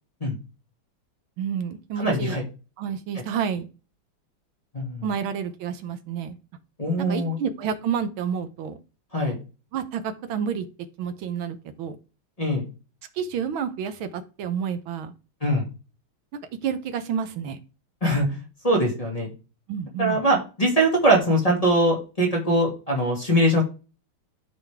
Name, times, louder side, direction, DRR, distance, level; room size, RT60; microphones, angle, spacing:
voice 1, 1.4-2.4 2.8-3.7 5.0-6.4 7.0-8.8 9.7-10.7 11.0-12.0 13.1-15.1 16.6-17.6 19.7-20.2, right 7 dB, 75° right, 10 dB, 1.6 m, -29 dB
voice 2, 2.0-2.4 4.7-5.1 6.8-7.4 9.1-9.4 12.4-12.7 15.4-15.6 18.0-18.3 18.6-19.3 20.0-23.6, right 1 dB, 20° left, -1 dB, 2.0 m, -22 dB
12.5 x 4.1 x 3.4 m, 0.33 s
omnidirectional pair, 2.3 m